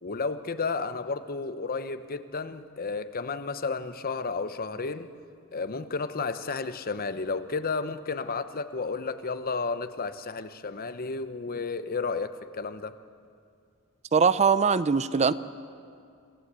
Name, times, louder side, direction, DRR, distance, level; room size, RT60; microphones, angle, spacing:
voice 1, 0.0-5.1 5.5-13.0, left 4 dB, 40° left, 11 dB, 0.8 m, -32 dB
voice 2, 14.1-15.3, right 5 dB, 30° right, 15 dB, 0.5 m, -21 dB
26.5 x 16.0 x 8.2 m, 2.3 s
head